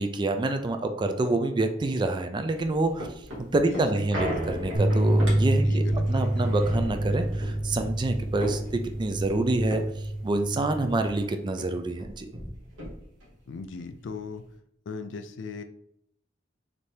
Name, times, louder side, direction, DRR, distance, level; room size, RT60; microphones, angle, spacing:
voice 1, 0.0-3.1 3.5-12.3, right 2 dB, 25° right, 7 dB, 0.3 m, -27 dB
sound 1, 2.5-11.2 11.6-11.7 11.9-13.3 13.8-13.9, equal, 75° right, 1.6 m, -36 dB
voice 2, 3.7-4.5 5.7-6.6 13.5-14.4 14.9-15.6, left 4 dB, 70° left, 8 dB, 0.4 m, -38 dB
sound 2, 4.7-11.0, right 1 dB, 55° right, 0.9 m, -27 dB
4.1 x 3.3 x 3.3 m, 0.74 s
head